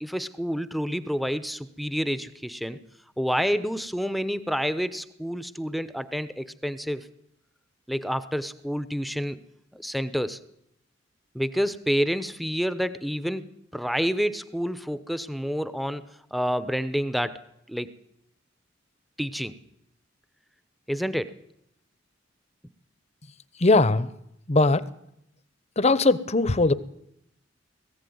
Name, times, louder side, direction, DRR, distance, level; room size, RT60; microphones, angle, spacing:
voice 1, 0.0-2.8 3.2-7.1 7.9-9.4 9.7-10.4 11.3-17.4 17.7-17.9 19.2-19.5 20.9-21.4, equal, ahead, 13 dB, 0.8 m, -28 dB
voice 2, 23.6-24.1 24.5-24.8 25.8-26.7, left 2 dB, 35° left, 16 dB, 0.9 m, -20 dB
19.5 x 15.0 x 9.5 m, 0.78 s
head